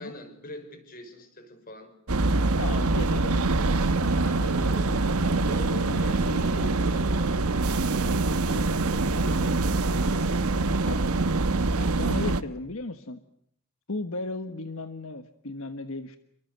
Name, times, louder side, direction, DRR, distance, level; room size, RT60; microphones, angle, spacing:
voice 1, 0.0-1.9 3.8-11.3, left 1 dB, 40° left, 9 dB, 5.5 m, -44 dB
sound 1, 2.1-12.4, right 3 dB, 90° right, 1.2 m, -24 dB
voice 2, 2.6-3.8 5.9-6.5 10.9-11.0 11.8-13.2 13.9-16.2, left 2 dB, 70° left, 9 dB, 1.4 m, -36 dB
28.5 x 24.5 x 8.0 m, 0.67 s
head